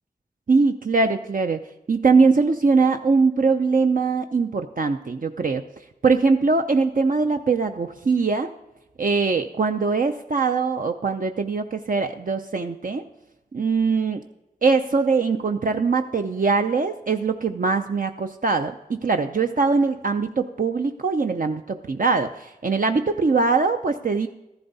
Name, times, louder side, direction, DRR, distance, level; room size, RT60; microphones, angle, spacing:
voice 1, 0.5-1.6 1.9-5.6 6.0-8.5 9.0-13.0 13.5-14.2 14.6-24.3, right 4 dB, 55° right, 5 dB, 0.6 m, -22 dB
13.5 x 11.5 x 4.0 m, 0.95 s
wide cardioid pair, 70°, 17 cm